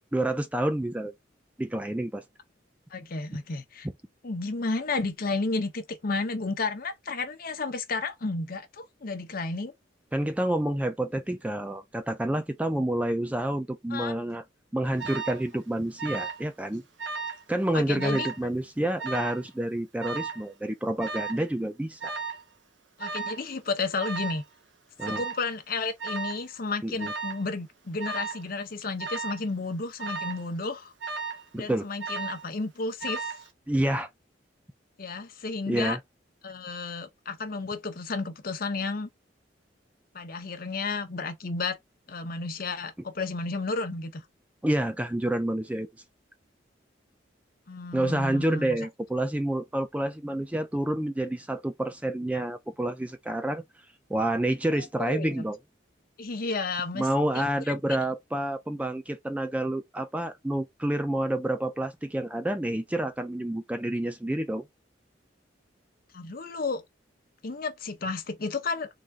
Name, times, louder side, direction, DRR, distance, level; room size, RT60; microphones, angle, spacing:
voice 1, 0.1-1.1 1.6-2.2 10.1-14.4 14.7-16.8 17.5-22.2 25.0-25.2 26.8-27.1 31.5-31.9 33.7-34.1 35.7-36.0 44.6-45.9 47.9-53.6 54.1-55.6 56.9-64.6, right 1 dB, 10° right, 0.4 m, -28 dB
voice 2, 2.9-3.9 4.2-9.7 13.9-14.1 17.7-18.3 23.0-24.4 25.0-30.9 31.5-33.3 35.0-36.0 36.4-39.1 40.1-41.8 42.1-44.2 47.7-48.8 54.7-55.4 56.2-57.1 57.3-57.4 66.1-66.8 67.4-68.9, left 3 dB, 50° left, 0.8 m, -32 dB
Alarm, 15.0-15.4 16.0-16.5 16.7-17.4 18.0-18.4 19.0-19.4 20.0-20.4 21.0-21.4 22.0-22.4 23.0-23.4 24.0-24.4 25.0-25.4 26.0-26.5 27.0-27.4 28.0-28.4 29.0-29.4 30.0-30.4 31.0-31.5 32.0-32.5 33.0-33.5, right 4 dB, 75° right, 0.9 m, -35 dB
3.8 x 3.4 x 2.4 m
head